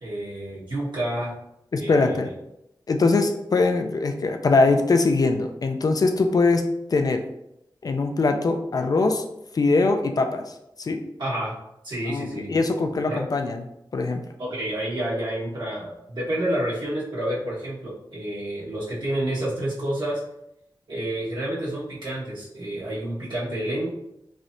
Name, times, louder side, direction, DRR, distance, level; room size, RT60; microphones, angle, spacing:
voice 1, 0.0-1.3 1.8-2.3 11.2-11.5 11.8-12.6 13.1-13.2 14.4-20.2 20.9-23.9, right 1 dB, 70° right, -8 dB, 1.4 m, -29 dB
voice 2, 1.7-2.3 2.9-7.2 7.8-9.2 9.5-10.4 10.8-11.0 12.1-13.7 13.9-14.2, left 3 dB, 50° left, 6 dB, 0.3 m, -22 dB
3.1 x 2.7 x 2.5 m, 0.82 s
wide cardioid pair, 75°, 8 cm